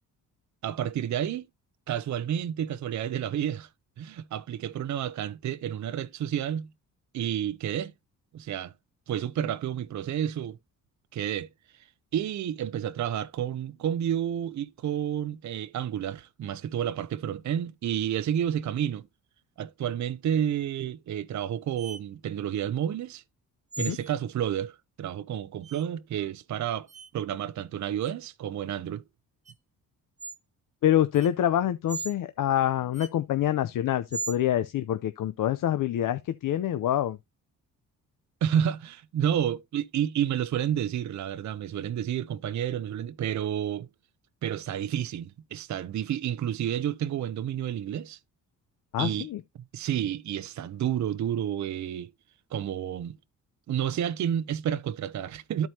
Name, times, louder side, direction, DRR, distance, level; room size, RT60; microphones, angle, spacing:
voice 1, 0.6-1.5 1.9-3.7 4.0-6.7 7.1-7.9 8.3-8.7 9.1-10.6 11.1-11.5 11.7-11.9 12.1-19.1 19.6-23.2 23.8-26.9 27.1-29.0 38.4-43.9 44.4-48.2 49.0-49.3 49.7-52.1 52.5-53.2 53.7-55.7, right 10 dB, 55° right, 0.7 m, -30 dB
sound 1, 21.8-22.0 23.7-24.2 25.6-25.8 26.9-27.1 28.0-28.1 29.4-29.5 30.2-30.4 31.1-31.3 31.9-32.1 32.9-33.1 34.1-34.4, right 4 dB, 20° right, 1.2 m, -37 dB
voice 2, 30.8-37.2 48.9-49.4, left 11 dB, 65° left, 0.7 m, -26 dB
13.0 x 4.5 x 2.8 m
cardioid pair, 80°, 34 cm